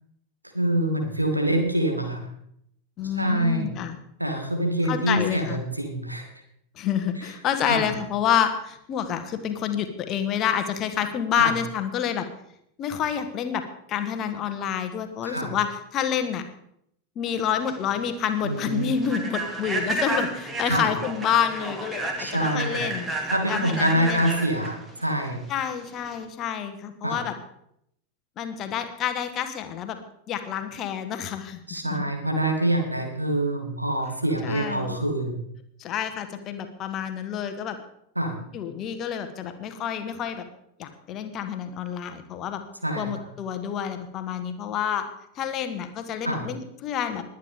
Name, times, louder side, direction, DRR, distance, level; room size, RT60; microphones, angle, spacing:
voice 1, 0.5-2.3 3.2-3.7 4.2-6.2 7.7-7.8 11.3-11.5 15.2-15.5 18.4-18.9 20.6-20.9 22.2-22.8 23.3-25.4 27.0-27.2 31.7-35.4 38.2-38.4 42.8-43.1 46.2-46.4, right 1 dB, 85° right, 3 dB, 2.4 m, -25 dB
voice 2, 3.0-4.0 4.9-5.6 6.7-12.3 12.8-13.6 13.9-16.4 17.1-24.2 25.5-27.3 28.4-30.0 30.3-32.0 34.4-35.0 35.8-37.8 38.5-40.4 40.8-42.6 42.9-45.1 45.3-47.2, left 8 dB, 35° left, 8 dB, 1.5 m, -28 dB
Human voice / Train, 17.4-26.2, right 2 dB, 15° right, 2.3 m, -32 dB
21.0 x 9.4 x 3.7 m, 0.73 s
figure-of-eight pair, 90°, 0 cm